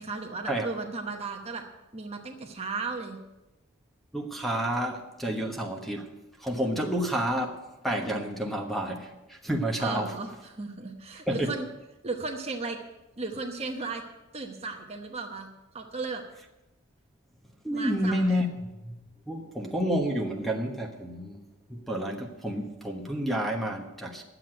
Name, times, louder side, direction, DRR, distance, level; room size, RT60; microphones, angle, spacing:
voice 1, 0.0-1.6 1.9-3.2 9.8-11.7 12.0-12.8 13.2-14.0 14.3-15.5 15.7-16.2 17.7-18.5, right 3 dB, 30° right, 3 dB, 1.0 m, -35 dB
voice 2, 4.1-6.1 6.4-10.1 11.3-11.5 17.6-18.5 18.8-19.0 19.3-21.4 21.7-24.2, equal, ahead, 2 dB, 1.1 m, -30 dB
11.0 x 7.9 x 7.7 m, 1.0 s
head